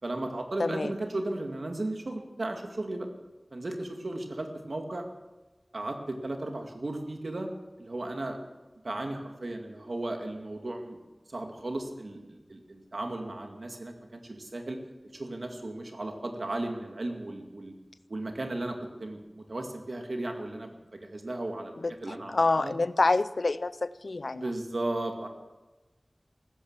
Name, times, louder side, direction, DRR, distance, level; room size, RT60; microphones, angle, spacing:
voice 1, 0.0-3.1 3.5-5.0 5.7-7.5 7.8-8.4 8.8-11.0 11.3-14.8 15.1-17.7 18.1-21.7 22.0-22.7 24.3-25.3, right 2 dB, 80° right, 4 dB, 2.2 m, -35 dB
voice 2, 0.6-0.9 21.8-24.5, left 3 dB, 90° left, 16 dB, 0.5 m, -27 dB
15.0 x 13.0 x 7.4 m, 1.1 s
wide cardioid pair, 45°, 0 cm